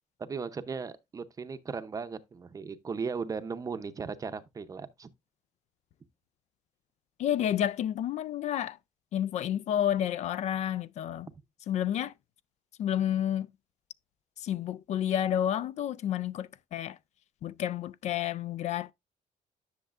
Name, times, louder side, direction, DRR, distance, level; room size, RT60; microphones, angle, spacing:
voice 1, 0.2-5.1, right 5 dB, 25° right, 0.6 m, -37 dB
voice 2, 7.2-8.8 9.1-11.3 11.7-12.1 12.8-13.5 14.4-17.0 17.4-18.9, left 10 dB, 55° left, 0.4 m, -30 dB
10.5 x 6.6 x 2.4 m
cardioid pair, 155°, 14 cm